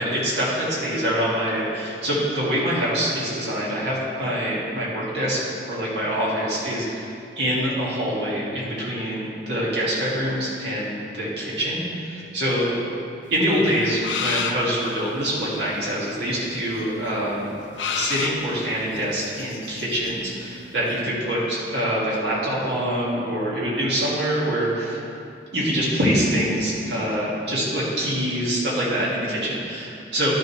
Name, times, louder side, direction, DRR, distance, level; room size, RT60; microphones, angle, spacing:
voice 1, 0.0-12.8 13.3-17.5 17.8-25.0 25.5-30.3, equal, 75° right, -6 dB, 2.1 m, -25 dB
sound 1, 13.7-14.9 16.8-16.9 17.1-17.2 17.8-20.1 20.6-20.7 20.9-21.0, left 7 dB, 85° left, 0.5 m, -29 dB
12.0 x 6.4 x 3.3 m, 2.6 s
head